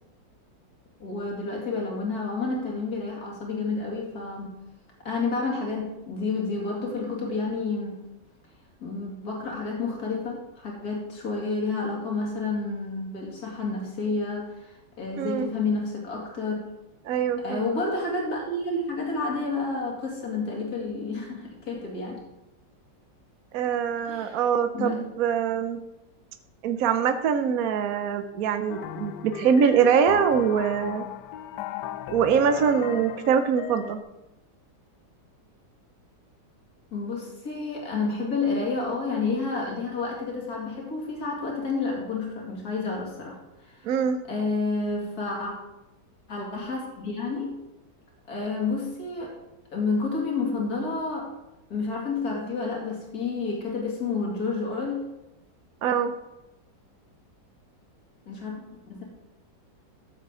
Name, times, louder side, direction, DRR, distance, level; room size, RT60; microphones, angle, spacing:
voice 1, 1.0-4.5 5.0-8.0 8.8-14.7 15.0-16.6 17.4-22.2 24.0-24.4 24.7-25.0 36.9-43.4 43.7-43.8 44.3-45.5 46.3-47.6 48.3-49.4 49.7-51.3 51.7-55.1 58.3-58.6 58.9-59.0, left 3 dB, 55° left, -2 dB, 2.8 m, -30 dB
voice 2, 15.2-15.5 17.0-17.8 23.5-25.8 26.6-31.0 32.1-34.0 43.8-44.2 55.8-56.1, right 7 dB, 65° right, 8 dB, 1.0 m, -23 dB
sound 1, 28.7-34.0, left 11 dB, 75° left, 1.1 m, -37 dB
14.0 x 7.3 x 3.7 m, 0.98 s
omnidirectional pair, 2.0 m